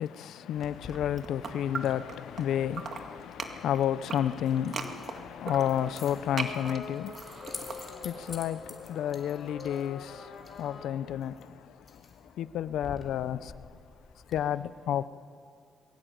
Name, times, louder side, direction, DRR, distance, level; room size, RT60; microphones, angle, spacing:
voice 1, 0.0-13.6 14.3-15.1, left 10 dB, 85° left, 0.7 m, -32 dB
Keys jangling, 0.5-14.4, left 4 dB, 35° left, 3.2 m, -50 dB
sound 1, 0.8-2.4 2.7-8.3, right 5 dB, 50° right, 2.1 m, -39 dB
sound 2, 5.5-10.9, left 5 dB, 60° left, 3.8 m, -45 dB
22.0 x 16.0 x 9.3 m
cardioid pair, 100°, 0 cm